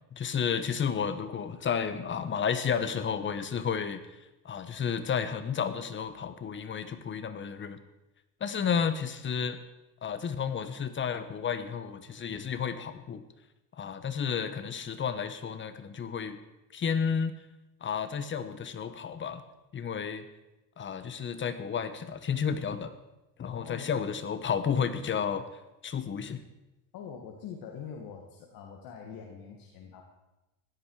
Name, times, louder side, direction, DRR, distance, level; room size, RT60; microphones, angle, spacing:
voice 1, 0.1-4.0 4.4-7.8 8.4-9.6 10.0-13.2 13.8-16.4 16.7-17.3 17.8-19.4 19.7-20.2 20.8-22.9 23.4-25.4 25.8-26.4, left 7 dB, 30° left, 11 dB, 1.2 m, -32 dB
voice 2, 23.5-23.9 26.9-30.0, left 7 dB, 55° left, 1 dB, 2.2 m, -44 dB
16.0 x 12.0 x 4.9 m, 1.0 s
supercardioid pair, 115°, 41 cm